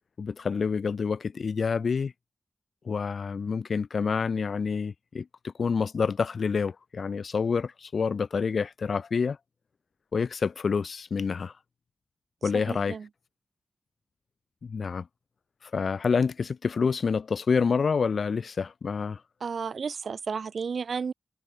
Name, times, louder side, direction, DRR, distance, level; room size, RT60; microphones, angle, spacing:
voice 1, 0.2-2.1 2.8-9.4 10.1-11.5 12.4-13.0 14.6-15.1 15.6-19.2, left 5 dB, 75° left, 1.0 m, -28 dB
voice 2, 12.4-13.1 19.4-21.1, right 5 dB, 80° right, 1.4 m, -33 dB
wide cardioid pair, 70°, 0 cm